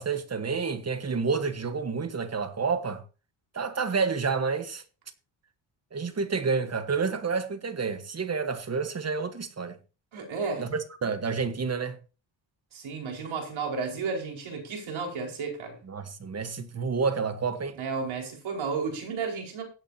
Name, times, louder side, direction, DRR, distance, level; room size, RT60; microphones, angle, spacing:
voice 1, 0.0-3.0 3.5-4.8 5.9-9.8 10.6-12.0 15.9-17.8, right 5 dB, 30° right, 1.3 m, -29 dB
voice 2, 10.1-10.6 12.7-15.8 17.8-19.6, right 5 dB, 75° right, 4.8 m, -32 dB
16.0 x 8.7 x 2.8 m
cardioid pair, 115°, 47 cm